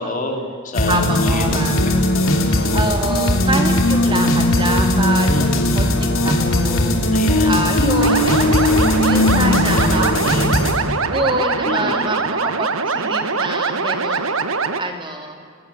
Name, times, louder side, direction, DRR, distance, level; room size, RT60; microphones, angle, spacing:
voice 1, 0.0-1.6 2.3-2.7 5.3-5.9 7.1-7.6 11.6-12.3, left 2 dB, 40° left, 3 dB, 3.3 m, -29 dB
sound 1, 0.7-10.7, left 1 dB, 70° left, 3.3 m, -17 dB
voice 2, 0.9-1.9 2.7-5.5 5.7-10.6 11.1-15.4, right 2 dB, 25° right, 4 dB, 2.7 m, -26 dB
sound 2, 8.0-14.8, right 4 dB, 80° right, 1.4 m, -22 dB
29.5 x 16.0 x 8.8 m, 2.3 s
head